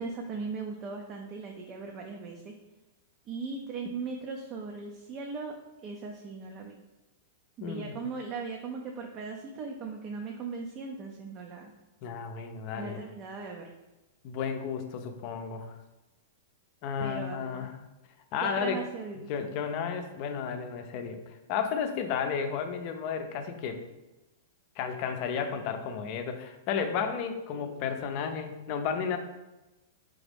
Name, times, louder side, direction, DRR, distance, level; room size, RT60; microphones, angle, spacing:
voice 1, 0.0-2.6 3.3-5.5 5.8-6.8 7.6-11.7 12.7-13.7 17.0-17.7 18.4-19.5 27.5-27.7, right 4 dB, 35° right, 1 dB, 0.5 m, -38 dB
voice 2, 7.6-7.9 12.0-13.0 14.2-15.7 16.8-17.7 18.3-18.8 19.2-23.8 24.8-29.2, left 6 dB, 45° left, 6 dB, 0.6 m, -33 dB
3.9 x 3.5 x 3.4 m, 1.0 s
hypercardioid pair, 120°, 0 cm